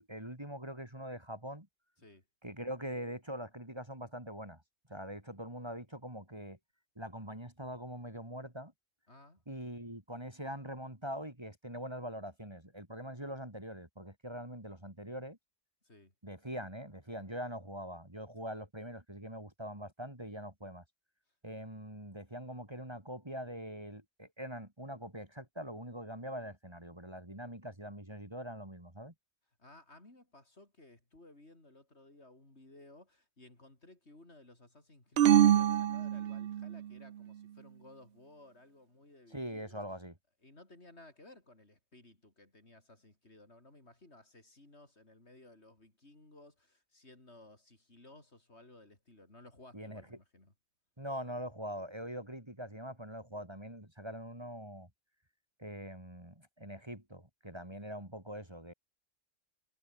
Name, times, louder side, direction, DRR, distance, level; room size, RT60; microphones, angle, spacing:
voice 1, 0.0-1.7 2.4-4.6 4.9-6.6 7.0-8.7 9.5-15.4 16.2-20.8 21.4-29.1 39.3-40.1 49.7-50.0 51.0-54.9 55.6-58.7, equal, 20° right, 3.7 m, -43 dB
voice 2, 9.1-9.4 15.8-16.1 29.6-39.8 40.4-50.5, left 2 dB, 55° left, 5.3 m, -58 dB
sound 1, 35.2-36.8, right 10 dB, 60° right, 0.8 m, -25 dB
omnidirectional pair, 1.3 m